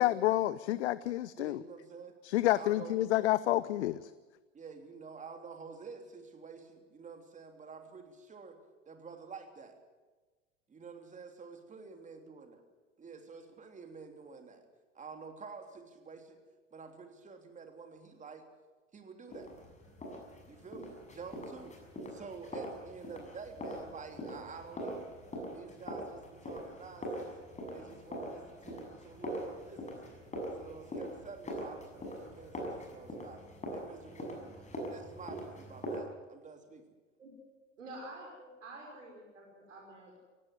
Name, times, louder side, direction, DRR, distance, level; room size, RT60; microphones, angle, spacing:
voice 1, 0.0-1.6 2.2-4.1, left 15 dB, 60° left, 0.7 m, -29 dB
voice 2, 1.4-2.2 2.5-3.0 4.5-8.6 8.9-9.7 10.7-12.4 13.0-14.6 14.9-16.4 16.7-18.4 18.9-19.5 20.5-21.8 22.1-25.1 25.5-27.3 27.7-30.2 30.6-33.4 33.7-36.8, right 5 dB, 20° right, 3.3 m, -49 dB
sound 1, 19.3-36.0, equal, 20° left, 6.9 m, -43 dB
voice 3, 37.8-40.2, right 1 dB, 80° right, 5.5 m, -48 dB
18.0 x 16.5 x 9.6 m
hypercardioid pair, 95°, 37 cm